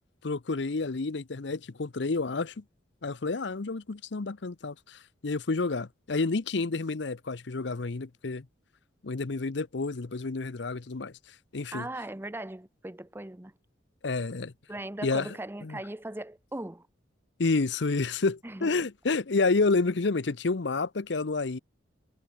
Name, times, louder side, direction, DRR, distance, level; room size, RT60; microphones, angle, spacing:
voice 1, 0.2-2.6 3.0-8.4 9.0-11.1 11.5-11.9 14.0-14.5 15.0-15.3 15.6-15.8 17.4-21.6, left 3 dB, 65° left, 0.7 m, -29 dB
voice 2, 11.7-13.5 14.7-16.9 18.4-18.7, right 1 dB, 10° right, 0.7 m, -39 dB
head